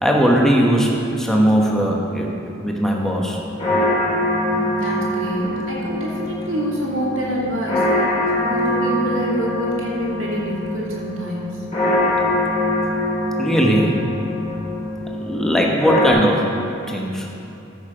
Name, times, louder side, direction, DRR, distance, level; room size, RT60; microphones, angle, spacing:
voice 1, 0.0-2.3 2.6-3.4 13.4-14.0 15.1-16.5 16.9-17.3, equal, ahead, -1 dB, 1.1 m, -18 dB
sound 1, 2.9-16.1, left 1 dB, 30° left, 2.4 m, -23 dB
voice 2, 4.4-7.9 8.3-11.6, equal, 75° right, -4 dB, 2.7 m, -26 dB
14.0 x 6.5 x 5.0 m, 2.9 s
head